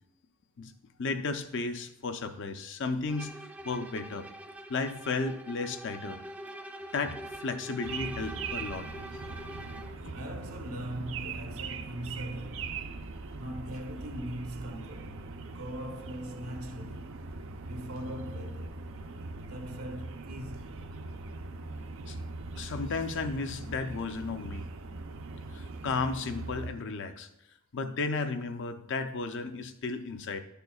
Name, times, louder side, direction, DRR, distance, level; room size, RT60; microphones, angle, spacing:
voice 1, 1.0-3.3 3.6-4.3 4.7-6.2 6.9-8.9 10.0-10.1 22.1-22.2 22.6-24.7 25.5-27.3 27.7-30.4, left 4 dB, 55° left, 0.5 m, -34 dB
Bowed string instrument, 3.1-10.0, right 1 dB, 5° right, 0.4 m, -44 dB
sound 1, 7.8-26.7, right 3 dB, 60° right, 0.6 m, -41 dB
voice 2, 10.1-12.9 13.3-17.2 17.6-18.8 19.4-20.8, equal, 80° right, 1.0 m, -41 dB
11.0 x 6.7 x 2.3 m
head